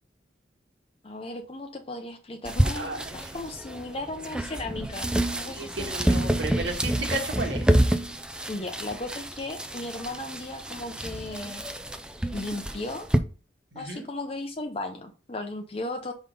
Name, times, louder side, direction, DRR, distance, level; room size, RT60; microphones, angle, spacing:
voice 1, 1.0-5.1 5.3-6.4 8.5-11.7 12.3-13.1 13.7-16.1, left 2 dB, 30° left, 0.6 m, -36 dB
sound 1, 2.4-13.2, right 1 dB, 5° right, 0.5 m, -28 dB
voice 2, 2.7-3.2 5.5-7.7 13.7-14.1, right 2 dB, 75° right, 1.8 m, -33 dB
5.4 x 4.0 x 5.4 m
head